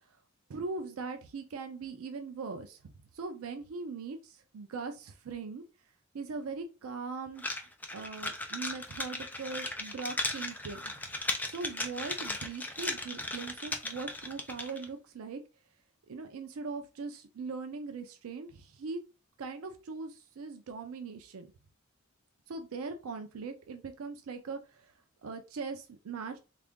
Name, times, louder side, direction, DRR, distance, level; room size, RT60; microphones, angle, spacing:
voice 1, 0.5-2.8 3.1-5.6 6.1-7.4 7.9-10.9 11.5-15.4 16.1-19.0 19.4-21.5 22.5-24.9 25.2-26.4, right 4 dB, 90° right, 6 dB, 0.4 m, -40 dB
sound 1, 7.4-14.9, left 2 dB, 10° left, 0.4 m, -37 dB
3.4 x 2.4 x 3.6 m, 0.33 s
head